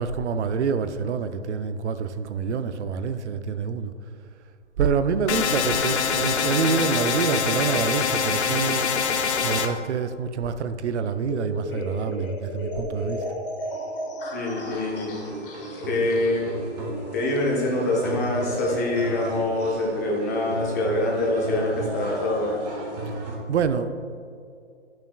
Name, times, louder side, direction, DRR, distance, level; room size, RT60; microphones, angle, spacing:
voice 1, 0.0-3.9 4.8-8.9 9.4-13.2 23.5-23.9, right 6 dB, 75° right, 11 dB, 0.5 m, -26 dB
sound 1, 5.3-9.7, left 6 dB, 70° left, 0.6 m, -24 dB
sound 2, 11.3-19.9, left 1 dB, 50° left, 1.1 m, -36 dB
voice 2, 14.3-15.1 15.9-16.4 17.1-22.6, left 2 dB, 15° left, -3 dB, 0.5 m, -25 dB
sound 3, 14.6-23.4, right 2 dB, 35° right, 1.4 m, -34 dB
8.9 x 5.8 x 2.3 m, 2.3 s
hypercardioid pair, 165°, 35 cm